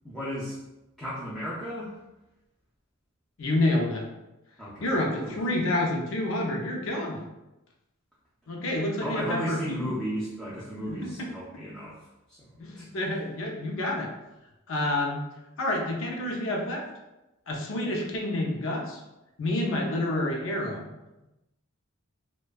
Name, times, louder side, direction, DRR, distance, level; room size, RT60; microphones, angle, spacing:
voice 1, 0.0-0.6 1.0-1.9 4.6-4.9 5.3-5.4 9.0-12.0 12.3-12.5 12.8-12.9, equal, ahead, -10 dB, 0.3 m, -34 dB
voice 2, 3.4-4.0 4.8-7.2 8.5-9.9 10.9-11.3 12.6-14.1 14.7-15.2 15.6-16.8 17.5-19.0 19.4-20.9, left 1 dB, 65° left, 0 dB, 0.5 m, -28 dB
2.5 x 2.2 x 2.2 m, 0.96 s
head